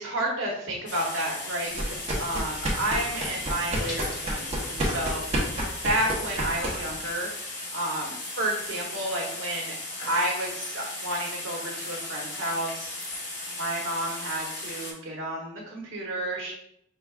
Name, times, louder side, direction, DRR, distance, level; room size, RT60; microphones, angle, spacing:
voice 1, 0.0-5.4 5.8-7.3 7.7-9.7 10.0-13.0 13.6-16.5, right 1 dB, 70° right, -3 dB, 1.1 m, -31 dB
sound 1, 0.9-14.9, left 2 dB, 55° left, 1.8 m, -36 dB
sound 2, 1.7-7.1, right 1 dB, 30° right, 1.0 m, -30 dB
6.1 x 3.4 x 2.4 m, 0.73 s
head